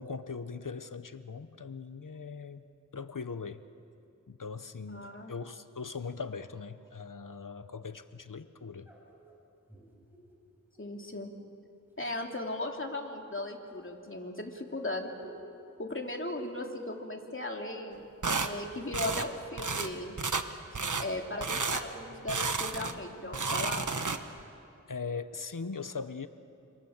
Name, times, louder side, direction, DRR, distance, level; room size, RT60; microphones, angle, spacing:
voice 1, 0.0-2.6 2.9-3.6 4.3-8.9 24.9-26.3, left 5 dB, 75° left, 11 dB, 1.0 m, -40 dB
voice 2, 4.9-5.3 10.8-11.3 12.0-15.1 15.8-18.1 18.4-20.2 21.0-23.8, left 2 dB, 40° left, 1 dB, 3.1 m, -37 dB
sound 1, 8.8-11.0 11.8-12.6 13.7-17.7 17.9-18.8 19.1-20.0 20.3-23.5, right 2 dB, 5° right, 7.8 m, -54 dB
sound 2, 18.2-18.5 18.9-19.3 19.6-19.9 20.2-20.5 20.7-21.1 21.4-21.8 22.3-23.0 23.3-24.4, right 4 dB, 65° right, 1.3 m, -32 dB
28.0 x 27.0 x 7.4 m, 2.6 s
wide cardioid pair, 55°, 32 cm